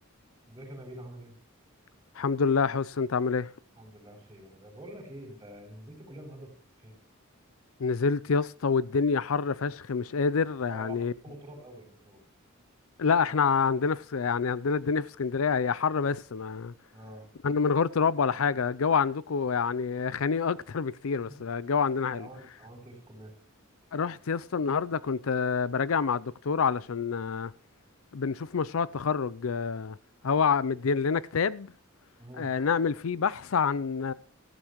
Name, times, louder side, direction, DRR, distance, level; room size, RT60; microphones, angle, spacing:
voice 1, 0.5-1.4 3.8-6.5 6.8-6.9 10.7-10.9 11.2-12.2 16.9-17.3 22.1-23.3 32.2-32.5, right 1 dB, 15° right, 7.1 m, -46 dB
voice 2, 2.2-3.5 7.8-11.1 13.0-16.7 17.4-22.3 23.9-27.5 28.1-30.0 30.2-31.7 32.4-34.1, left 5 dB, 75° left, 0.5 m, -27 dB
15.0 x 14.5 x 3.0 m
head